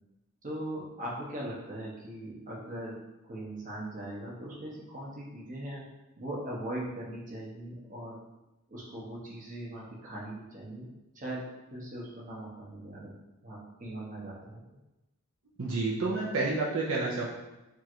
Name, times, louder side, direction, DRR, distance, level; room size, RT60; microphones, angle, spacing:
voice 1, 0.4-5.8 6.2-8.2 8.7-10.9 11.1-11.4 11.7-13.2 13.4-14.6, right 1 dB, 35° right, -4 dB, 0.9 m, -40 dB
voice 2, 15.6-17.3, right 3 dB, 65° right, -4 dB, 0.7 m, -29 dB
3.5 x 2.5 x 4.4 m, 1.0 s
head